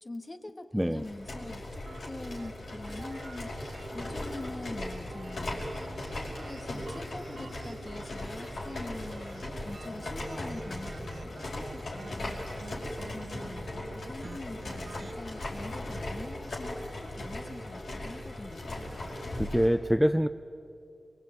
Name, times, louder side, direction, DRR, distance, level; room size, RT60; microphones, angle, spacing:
voice 1, 0.0-5.8 6.2-12.5 13.0-19.0, left 2 dB, 35° left, 6 dB, 2.0 m, -44 dB
sound 1, 0.9-19.7, left 1 dB, 80° left, 5.3 m, -38 dB
sound 2, 1.3-15.1, right 3 dB, 70° right, 1.5 m, -48 dB
voice 2, 19.0-20.3, equal, 5° right, 9 dB, 0.7 m, -26 dB
23.0 x 23.0 x 9.2 m, 2.6 s
cardioid pair, 45°, 0 cm